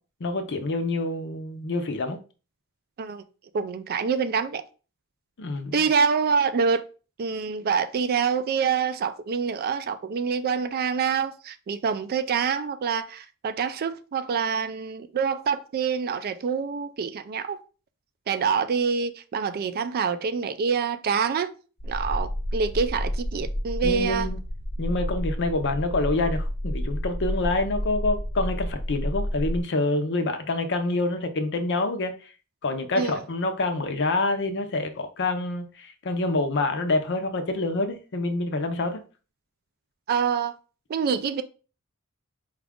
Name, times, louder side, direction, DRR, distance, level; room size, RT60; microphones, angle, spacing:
voice 1, 0.2-2.2 5.4-5.8 23.8-24.4 24.8-32.1 32.6-39.0, left 2 dB, 55° left, 0.6 m, -27 dB
voice 2, 3.5-4.6 5.7-6.9 7.2-17.6 18.3-21.5 21.8-24.3 33.0-33.2 40.1-40.5 40.9-41.4, right 6 dB, 45° right, 0.3 m, -26 dB
sound 1, 21.8-29.6, equal, 85° left, 1.1 m, -30 dB
4.9 x 2.4 x 3.5 m
head